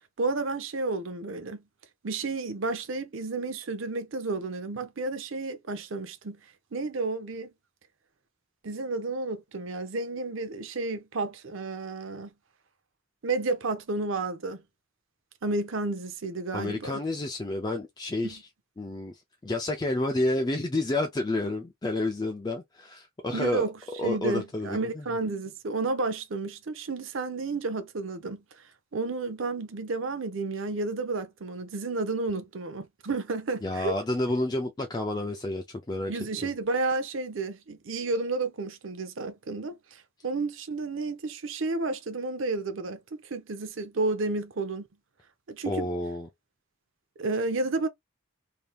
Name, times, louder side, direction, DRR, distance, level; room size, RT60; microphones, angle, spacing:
voice 1, 0.2-1.6 2.0-6.4 6.7-7.5 8.6-12.3 13.2-14.6 15.4-17.0 18.2-18.4 23.3-23.7 24.0-28.4 28.9-33.9 36.1-44.9 45.5-45.9 47.2-47.9, right 3 dB, 70° right, 0.7 m, -31 dB
voice 2, 16.5-18.4 18.8-23.7 24.0-25.0 33.6-36.1 36.4-36.5 45.6-46.3, left 2 dB, 20° left, 0.4 m, -30 dB
3.3 x 2.8 x 2.3 m
head